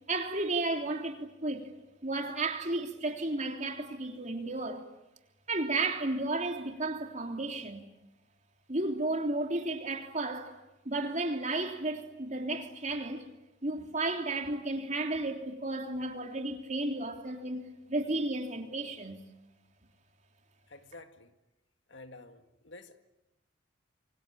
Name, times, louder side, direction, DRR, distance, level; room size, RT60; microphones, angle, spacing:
voice 1, 0.1-1.7 2.0-4.9 5.5-7.9 8.7-10.6 10.8-13.3 13.6-19.2, right 2 dB, 40° right, 3.2 m, -33 dB
voice 2, 20.7-21.3 21.9-23.0, left 2 dB, 70° left, 2.0 m, -50 dB
27.0 x 25.0 x 8.8 m
head